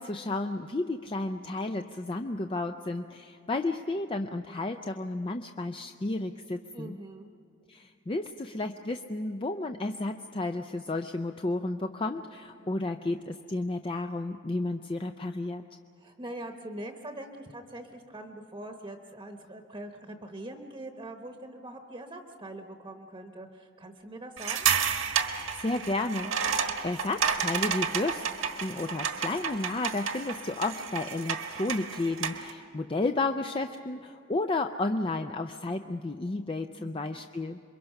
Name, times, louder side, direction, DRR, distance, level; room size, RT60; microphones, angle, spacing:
voice 1, 0.0-7.0 7.7-15.6 25.5-28.3 28.6-37.6, left 2 dB, 25° left, 7 dB, 0.4 m, -32 dB
voice 2, 6.7-7.3 16.0-24.7 36.8-37.2, right 1 dB, 20° right, 4 dB, 1.0 m, -43 dB
sound 1, 24.4-32.5, right 7 dB, 75° right, 1.5 m, -31 dB
27.5 x 23.0 x 5.8 m, 2.6 s
head